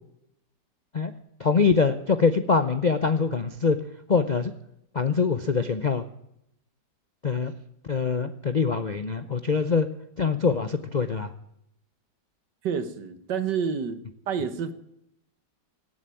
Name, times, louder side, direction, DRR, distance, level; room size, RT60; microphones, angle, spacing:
voice 1, 1.4-3.8 4.1-4.5 4.9-6.1 7.2-7.5 7.8-9.9 10.2-11.3, left 5 dB, 50° left, 10 dB, 0.5 m, -24 dB
voice 2, 12.6-14.0 14.3-14.7, right 6 dB, 75° right, 12 dB, 1.9 m, -28 dB
17.5 x 8.0 x 9.1 m, 0.79 s
omnidirectional pair, 1.9 m